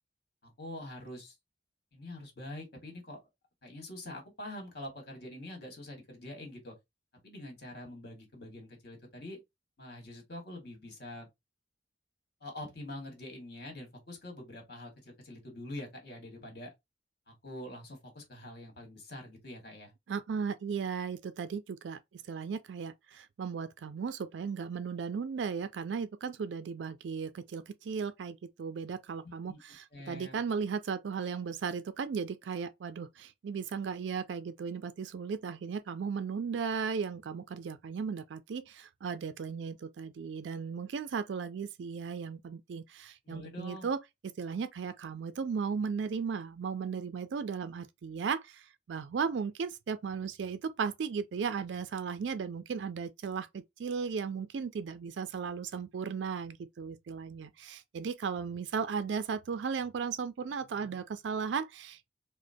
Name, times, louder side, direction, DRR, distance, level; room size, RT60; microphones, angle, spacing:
voice 1, 0.4-1.3 1.9-3.2 3.6-6.7 7.2-9.4 9.8-11.3 12.4-16.7 17.3-19.9 29.2-29.6 29.9-30.4 43.2-43.9, left 1 dB, 55° left, 1.7 m, -45 dB
voice 2, 20.1-44.0 44.4-62.0, right 6 dB, 75° right, 0.4 m, -36 dB
5.0 x 2.1 x 2.6 m
head